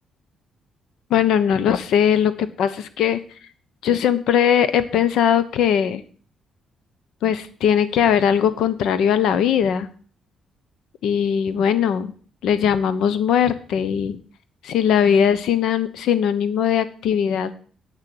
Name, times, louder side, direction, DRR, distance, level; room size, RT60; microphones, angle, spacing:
voice 1, 1.1-3.2 3.8-6.0 7.2-9.9 11.0-12.1 12.4-14.2 14.6-17.6, left 8 dB, 80° left, 13 dB, 1.1 m, -20 dB
8.8 x 7.0 x 7.9 m, 0.43 s
cardioid pair, 90°, 0 cm